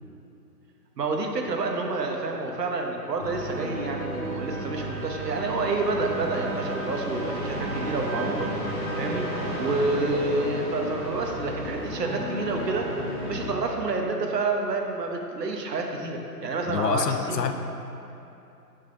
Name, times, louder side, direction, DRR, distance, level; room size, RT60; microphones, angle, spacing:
voice 1, 1.0-8.5 9.0-9.3 9.6-13.0 13.2-17.5, right 3 dB, 75° right, 2 dB, 1.0 m, -29 dB
sound 1, 3.2-13.5, equal, 10° left, 1.5 m, -32 dB
voice 2, 16.7-17.5, left 7 dB, 75° left, 8 dB, 0.6 m, -26 dB
6.5 x 3.7 x 5.8 m, 2.9 s
hypercardioid pair, 155°, 49 cm